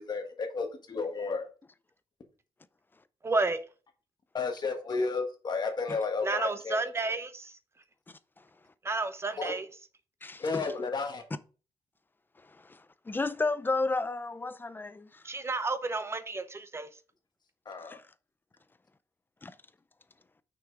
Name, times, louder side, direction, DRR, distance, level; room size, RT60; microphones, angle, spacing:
voice 1, 0.0-1.5 4.3-6.8 9.4-9.5 10.4-11.2 17.6-18.0, left 4 dB, 40° left, 1.6 m, -32 dB
voice 2, 3.2-3.6 6.2-7.5 8.8-9.7 15.2-16.9, right 3 dB, 25° right, 0.8 m, -31 dB
voice 3, 10.2-10.7 12.4-15.2 17.9-18.0 19.4-19.5, left 3 dB, 20° left, 0.5 m, -33 dB
6.1 x 5.9 x 4.8 m
wide cardioid pair, 135°, 11 cm